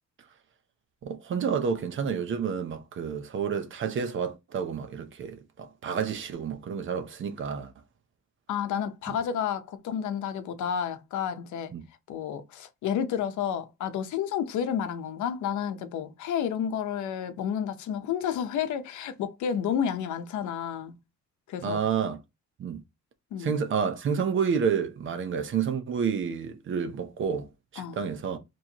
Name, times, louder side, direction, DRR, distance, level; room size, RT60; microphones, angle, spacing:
voice 1, 1.0-7.7 9.1-9.2 11.7-11.8 21.6-22.2 22.6-22.8 23.4-28.4, right 6 dB, 45° right, 0.6 m, -30 dB
voice 2, 8.5-11.7 12.1-21.0 21.5-21.8 23.3-23.6 27.8-28.0, left 8 dB, 80° left, 0.7 m, -31 dB
4.4 x 3.1 x 2.8 m
cardioid pair, 165°, 29 cm